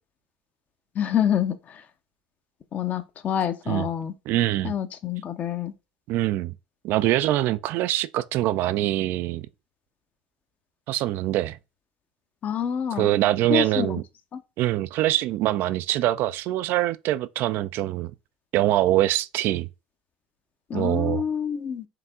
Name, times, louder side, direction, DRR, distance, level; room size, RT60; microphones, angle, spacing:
voice 1, 0.9-1.8 2.7-4.1 4.6-5.7 12.4-13.1 13.5-14.0 14.3-14.4 20.7-21.9, left 9 dB, 40° left, 0.7 m, -27 dB
voice 2, 4.3-4.7 6.1-6.5 6.8-9.5 10.9-11.6 13.0-14.0 14.6-18.1 18.5-19.7 20.7-21.2, right 14 dB, 55° right, 0.3 m, -24 dB
4.7 x 2.7 x 3.6 m
hypercardioid pair, 80°, 4 cm